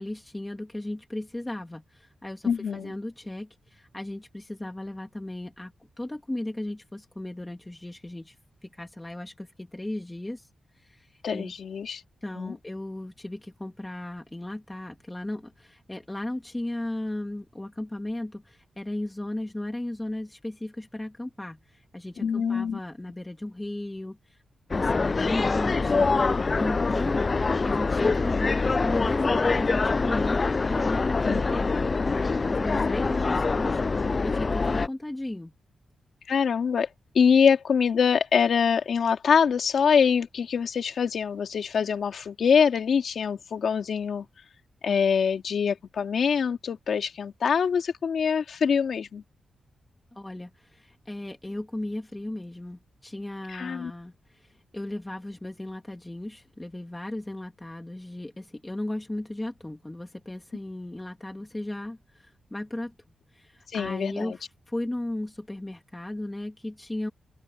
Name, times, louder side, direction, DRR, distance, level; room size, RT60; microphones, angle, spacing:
voice 1, 0.0-5.7 6.0-8.4 8.6-10.5 10.7-11.5 12.2-24.4 24.7-35.5 50.1-62.9 63.3-67.1, left 1 dB, 10° left, 2.8 m, -36 dB
voice 2, 2.4-2.9 11.2-12.0 12.4-12.5 22.2-22.8 31.2-31.4 36.3-36.9 37.1-44.2 44.8-49.2 53.5-53.9 63.7-64.4, left 6 dB, 65° left, 2.5 m, -24 dB
sound 1, 24.7-34.9, left 4 dB, 30° left, 0.3 m, -24 dB
open air
wide cardioid pair, 135°, 0 cm